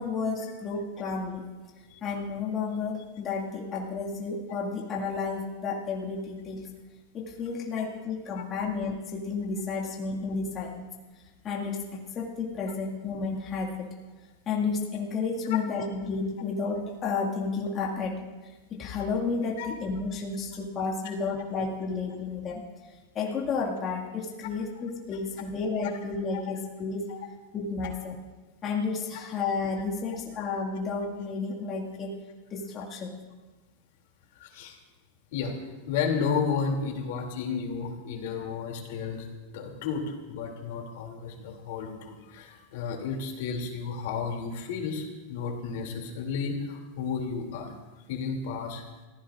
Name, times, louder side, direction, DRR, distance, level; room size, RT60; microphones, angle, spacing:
voice 1, 0.0-1.5 2.0-6.7 7.1-10.9 11.4-13.9 14.5-18.2 18.7-22.6 23.1-27.1 27.5-28.2 28.6-32.1 32.5-33.1, left 4 dB, 30° left, -2 dB, 2.1 m, -31 dB
voice 2, 34.3-34.8 35.3-35.5 35.9-39.3 39.5-47.7 48.1-48.8, left 5 dB, 70° left, 2 dB, 2.9 m, -32 dB
26.0 x 15.5 x 2.6 m, 1.2 s
supercardioid pair, 135°, 0 cm